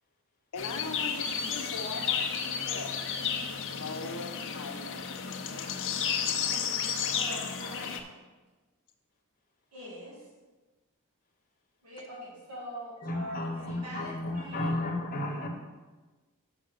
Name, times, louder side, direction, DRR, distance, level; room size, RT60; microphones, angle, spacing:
voice 1, 0.5-2.9 3.6-5.1, left 3 dB, 85° left, 5 dB, 0.9 m, -40 dB
sound 1, 0.6-8.0, left 7 dB, 60° left, 0.7 m, -32 dB
voice 2, 6.4-8.1 9.7-10.3 11.8-14.9, equal, 80° right, -6 dB, 2.3 m, -44 dB
voice 3, 13.0-15.5, left 1 dB, 40° left, 1 dB, 1.1 m, -33 dB
6.4 x 5.2 x 6.5 m, 1.3 s
head